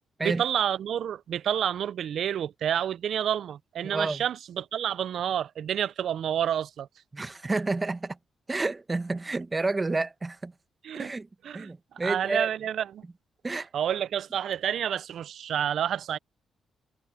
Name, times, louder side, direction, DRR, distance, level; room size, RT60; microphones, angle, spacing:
voice 1, 0.2-6.9 10.8-11.1 11.4-11.7 12.0-13.0 13.5-16.2, right 9 dB, 70° right, 0.5 m, -29 dB
voice 2, 3.8-4.2 7.1-8.2 8.5-10.5 10.9-11.3 11.5-12.5 13.4-13.7, right 3 dB, 25° right, 1.3 m, -30 dB
supercardioid pair, 60°, 0 cm